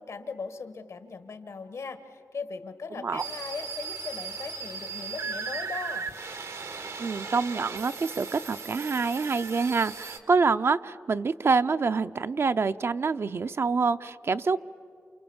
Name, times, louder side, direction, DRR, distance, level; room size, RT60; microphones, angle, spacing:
voice 1, 0.0-6.1, left 4 dB, 80° left, 10 dB, 1.6 m, -39 dB
sound 1, 3.2-10.2, right 5 dB, 90° right, 1.9 m, -37 dB
voice 2, 7.0-14.6, right 4 dB, 55° right, 11 dB, 0.6 m, -26 dB
28.5 x 28.5 x 7.2 m, 2.5 s
wide cardioid pair, 95°, 5 cm